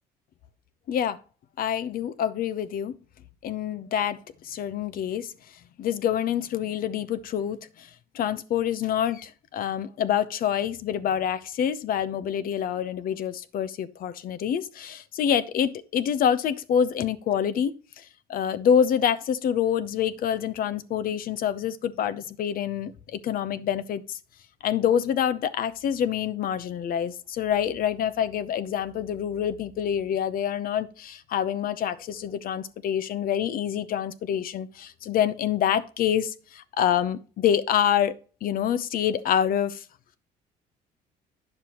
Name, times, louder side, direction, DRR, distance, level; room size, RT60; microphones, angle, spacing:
voice 1, 1.6-2.9 3.4-5.3 5.8-7.9 8.1-17.7 18.3-24.2 24.6-38.1 38.4-39.8, left 9 dB, 60° left, 0.7 m, -26 dB
9.6 x 6.7 x 3.0 m
cardioid pair, 110°, 17 cm